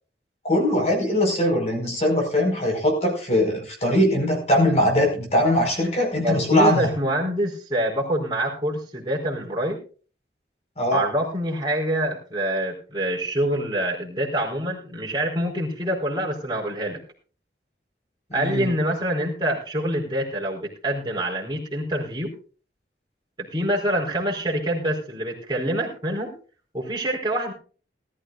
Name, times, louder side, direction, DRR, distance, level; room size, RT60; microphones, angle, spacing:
voice 1, 0.4-6.9 10.8-11.0 18.3-18.7, left 1 dB, 35° left, 2 dB, 5.0 m, -21 dB
voice 2, 6.2-9.8 10.9-17.0 18.3-22.3 23.4-26.3 26.7-27.5, right 1 dB, 25° right, -1 dB, 4.3 m, -26 dB
20.0 x 13.0 x 2.5 m, 0.38 s
head